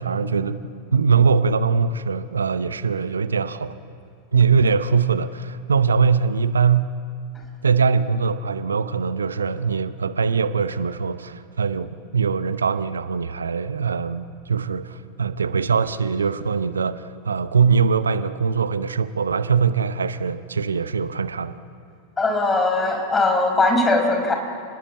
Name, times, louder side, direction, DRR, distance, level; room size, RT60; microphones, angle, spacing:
voice 1, 0.0-3.8 4.3-7.0 7.6-21.6, right 5 dB, 70° right, 13 dB, 0.8 m, -22 dB
voice 2, 22.2-24.3, left 2 dB, 15° left, 4 dB, 4.9 m, -20 dB
27.5 x 20.0 x 8.4 m, 2.5 s
figure-of-eight pair, 90°, 0 cm